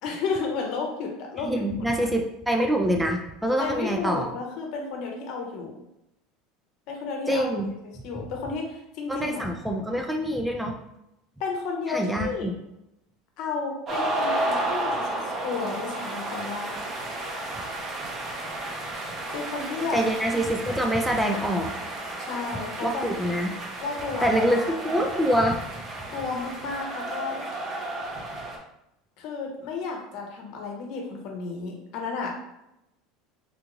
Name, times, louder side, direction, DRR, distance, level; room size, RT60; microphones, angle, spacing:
voice 1, 0.0-1.5 2.0-2.1 3.6-5.8 6.9-7.5 8.0-9.5 11.4-12.5 13.4-16.8 19.3-20.0 22.2-23.1 23.8-24.7 26.1-27.4 29.2-32.5, left 4 dB, 60° left, 1 dB, 0.9 m, -32 dB
voice 2, 1.4-4.3 7.3-7.7 9.1-10.7 11.9-12.5 19.9-21.7 22.8-23.5 24.2-25.6, equal, 5° right, 2 dB, 0.4 m, -25 dB
sound 1, 13.9-28.6, right 2 dB, 35° right, 0.8 m, -32 dB
3.7 x 2.5 x 3.0 m, 0.86 s
supercardioid pair, 130°, 0 cm